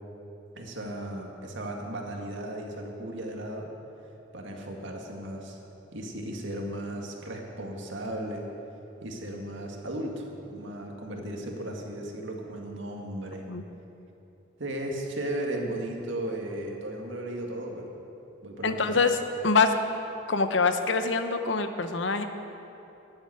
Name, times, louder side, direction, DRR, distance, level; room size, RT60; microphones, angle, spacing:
voice 1, 0.5-3.7 4.3-5.6 5.9-8.5 9.0-13.4 14.6-17.9 18.4-19.0, right 1 dB, 75° right, 1 dB, 1.9 m, -35 dB
voice 2, 18.6-19.2 19.4-19.8 20.3-22.2, left 4 dB, 75° left, 8 dB, 0.9 m, -24 dB
12.5 x 8.2 x 9.8 m, 3.0 s
head